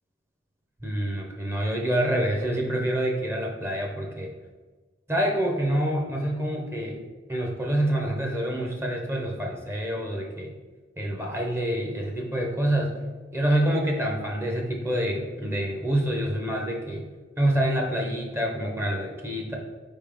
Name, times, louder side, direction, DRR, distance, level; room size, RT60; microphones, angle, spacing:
voice 1, 0.8-4.3 5.1-7.0 7.3-10.5 11.0-12.9 13.3-17.0 17.4-19.6, right 1 dB, 15° right, 1 dB, 0.6 m, -27 dB
4.4 x 3.6 x 3.4 m, 1.3 s
head